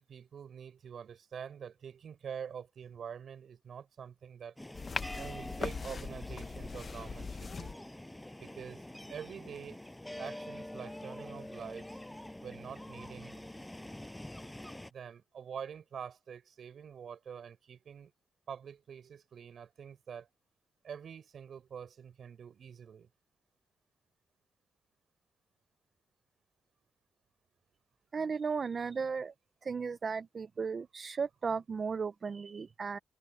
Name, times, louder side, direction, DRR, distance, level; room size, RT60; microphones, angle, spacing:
voice 1, 0.0-4.5 5.1-7.8 8.4-9.8 10.2-12.0 12.4-13.4 14.9-18.1 18.5-20.3 20.8-23.1, right 7 dB, 65° right, 6.2 m, -46 dB
sound 1, 4.6-14.9, left 1 dB, 10° left, 7.0 m, -46 dB
sound 2, 4.7-7.7, left 5 dB, 45° left, 1.1 m, -40 dB
voice 2, 28.1-29.3 29.6-33.0, right 5 dB, 45° right, 0.6 m, -35 dB
cardioid pair, 80°, 0 cm